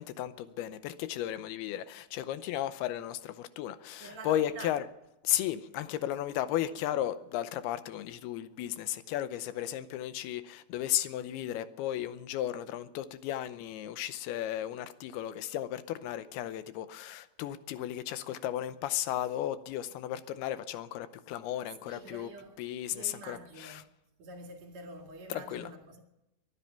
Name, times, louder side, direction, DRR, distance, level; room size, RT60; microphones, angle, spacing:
voice 1, 0.0-4.8 5.2-22.3 22.6-23.8 25.3-25.7, left 12 dB, 90° left, 2.8 m, -34 dB
voice 2, 4.0-4.8 21.9-22.6 22.9-23.8 24.2-26.0, right 2 dB, 50° right, 2.9 m, -46 dB
23.5 x 9.8 x 5.7 m
omnidirectional pair, 4.4 m